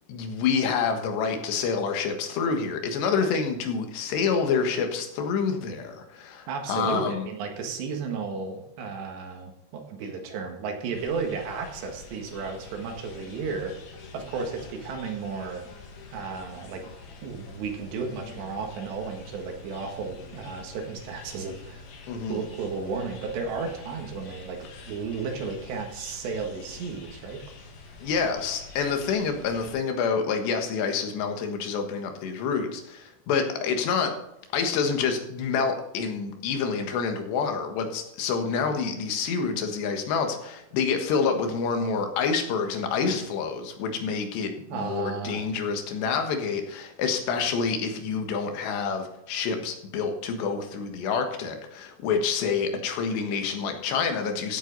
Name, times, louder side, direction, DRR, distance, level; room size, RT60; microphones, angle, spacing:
voice 1, 0.1-7.3 22.1-22.5 28.0-34.1 34.5-54.6, left 5 dB, 90° left, 5 dB, 3.7 m, -27 dB
voice 2, 6.5-13.7 14.1-15.6 16.1-16.8 17.2-21.9 22.3-27.4 44.7-45.4, right 5 dB, 90° right, 3 dB, 3.9 m, -33 dB
sound 1, 10.9-29.8, left 4 dB, 65° left, 3.7 m, -46 dB
15.0 x 8.3 x 4.0 m, 0.86 s
omnidirectional pair, 4.8 m